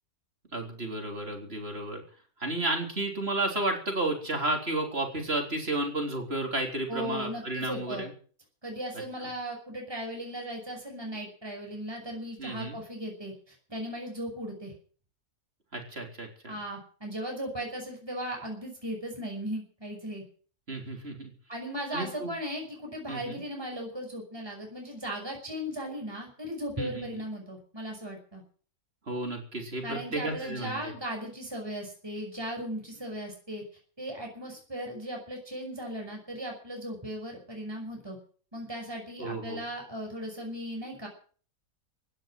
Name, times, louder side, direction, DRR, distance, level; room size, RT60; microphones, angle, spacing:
voice 1, 0.5-2.0 2.4-8.1 12.4-12.8 15.7-16.6 20.7-21.3 21.9-22.3 23.1-23.4 26.8-27.2 29.1-30.9 39.2-39.6, right 2 dB, 40° right, 2 dB, 3.9 m, -32 dB
voice 2, 6.9-8.0 8.6-14.7 16.5-20.2 21.5-28.4 29.8-33.6 34.0-38.2 38.5-41.1, equal, 15° right, 1 dB, 5.8 m, -37 dB
16.0 x 10.5 x 7.6 m, 0.44 s
omnidirectional pair, 1.7 m